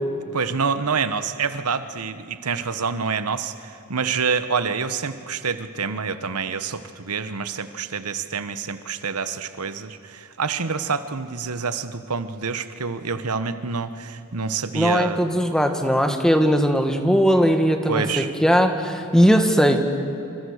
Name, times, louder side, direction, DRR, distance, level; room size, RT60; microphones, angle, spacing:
voice 1, 0.3-15.5 17.9-18.3, right 5 dB, 90° right, 11 dB, 1.1 m, -27 dB
voice 2, 14.7-20.0, equal, 5° left, 5 dB, 1.8 m, -19 dB
28.0 x 26.5 x 6.5 m, 2.9 s
head